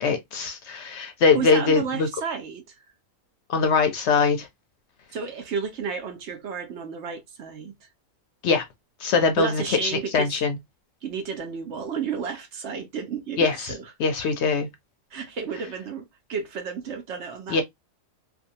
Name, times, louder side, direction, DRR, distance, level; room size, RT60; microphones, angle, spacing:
voice 1, 0.0-2.1 3.5-4.5 8.4-8.6 9.0-10.6 13.4-13.7 14.0-14.7 17.5-17.6, left 4 dB, 65° left, 0.8 m, -22 dB
voice 2, 1.3-2.8 5.1-7.9 9.1-10.4 11.0-13.9 15.1-17.6, right 6 dB, 65° right, 0.9 m, -32 dB
2.6 x 2.3 x 2.6 m
omnidirectional pair, 1.4 m